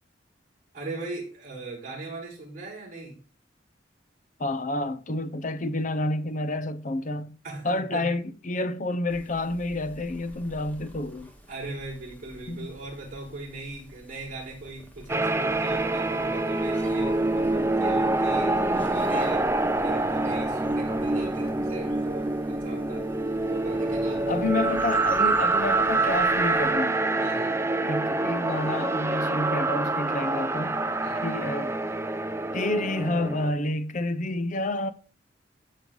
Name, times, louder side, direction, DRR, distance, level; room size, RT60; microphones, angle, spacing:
voice 1, 0.7-3.2 7.4-8.1 11.5-23.1 23.5-24.5 27.2-27.6 31.0-31.3, right 2 dB, 45° right, 4.9 m, -39 dB
voice 2, 4.4-7.4 7.6-11.3 12.5-12.7 24.3-27.0 27.8-30.8 31.2-31.7 32.5-34.9, left 2 dB, 40° left, 0.8 m, -29 dB
sound 1, 9.1-26.7, equal, 10° left, 1.7 m, -48 dB
sound 2, 15.1-33.5, right 2 dB, 15° right, 0.5 m, -26 dB
14.5 x 6.6 x 3.9 m
head